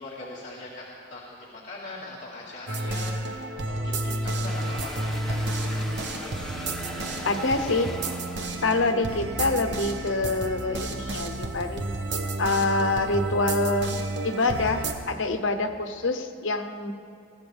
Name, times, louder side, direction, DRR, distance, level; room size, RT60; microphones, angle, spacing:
voice 1, 0.0-5.4, left 2 dB, 40° left, -9 dB, 2.2 m, -41 dB
sound 1, 2.7-14.9, right 2 dB, 65° right, 1.1 m, -31 dB
sound 2, 4.5-9.0, left 1 dB, ahead, 1.1 m, -39 dB
voice 2, 7.2-7.9 8.6-11.8 12.4-13.9 14.2-16.9, left 2 dB, 85° left, 6 dB, 0.9 m, -26 dB
22.0 x 15.5 x 3.4 m, 2.6 s
head